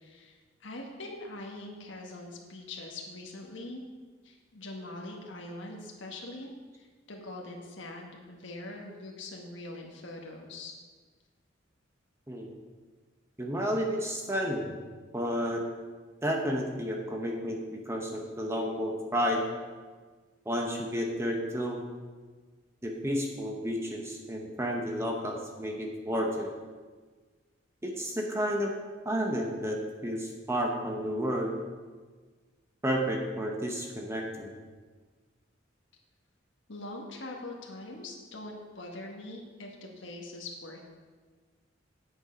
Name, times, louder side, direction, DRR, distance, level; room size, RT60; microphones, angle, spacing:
voice 1, 0.0-3.8 4.2-10.7 36.7-40.8, left 2 dB, 70° left, 0 dB, 1.5 m, -43 dB
voice 2, 13.4-14.8 15.1-15.6 16.2-19.4 20.5-21.8 22.8-26.5 27.8-28.7 29.0-31.5 32.8-34.5, equal, 15° right, 0 dB, 0.9 m, -31 dB
9.2 x 8.0 x 5.2 m, 1.4 s
head